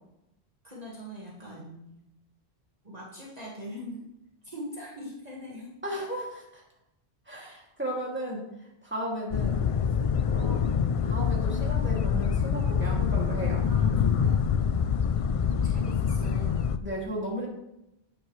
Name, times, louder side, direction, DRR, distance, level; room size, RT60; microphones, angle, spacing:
voice 1, 0.6-1.8 2.8-4.1 4.4-5.8 12.8-13.0 13.7-14.5 15.4-16.6, equal, 35° right, -5 dB, 1.9 m, -42 dB
voice 2, 5.8-6.6 7.3-8.4 8.8-9.6 10.3-10.7 11.0-13.6 16.8-17.5, equal, 10° right, -3 dB, 2.4 m, -34 dB
sound 1, 9.3-16.8, left 7 dB, 60° left, 0.3 m, -25 dB
9.8 x 9.1 x 3.2 m, 0.85 s
omnidirectional pair, 1.1 m